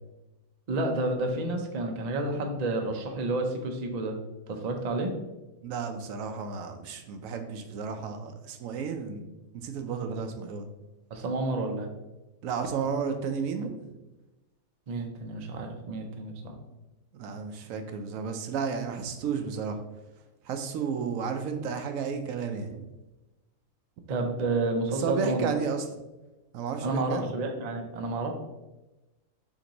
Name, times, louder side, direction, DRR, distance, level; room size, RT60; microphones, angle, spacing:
voice 1, 0.7-4.2 4.5-5.1 11.1-11.9 14.9-16.6 24.1-25.5 26.8-28.3, right 2 dB, 55° right, 4 dB, 0.4 m, -30 dB
voice 2, 5.6-9.3 9.5-10.7 12.4-13.8 17.1-19.8 20.5-22.8 24.9-25.8 26.5-27.3, right 6 dB, 75° right, 6 dB, 1.0 m, -32 dB
6.6 x 2.6 x 2.9 m, 1.0 s
omnidirectional pair, 1.5 m